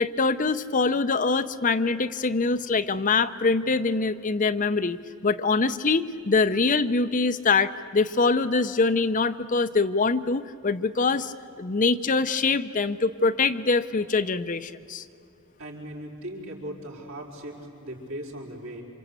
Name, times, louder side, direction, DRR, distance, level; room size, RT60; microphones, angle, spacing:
voice 1, 0.0-5.0 5.2-15.0, left 4 dB, 40° left, 12 dB, 0.7 m, -24 dB
voice 2, 15.6-18.8, right 1 dB, 80° right, -2 dB, 5.0 m, -38 dB
27.5 x 26.0 x 8.2 m, 2.8 s
head